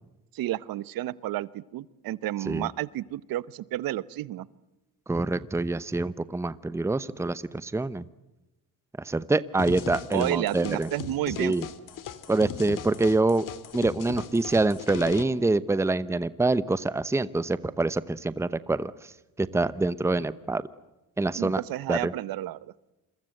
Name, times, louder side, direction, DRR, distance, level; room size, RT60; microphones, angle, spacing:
voice 1, 0.3-4.5 10.1-11.6 21.4-22.6, right 14 dB, 80° right, 19 dB, 1.0 m, -31 dB
voice 2, 5.1-8.0 9.0-10.9 11.4-11.6 12.3-13.4 13.7-18.9 19.4-20.7 21.2-21.6 21.9-22.1, right 2 dB, 10° right, 16 dB, 0.8 m, -26 dB
sound 1, 9.6-15.2, left 8 dB, 65° left, 2.5 m, -38 dB
28.0 x 23.0 x 7.9 m, 0.98 s
cardioid pair, 105°, 35 cm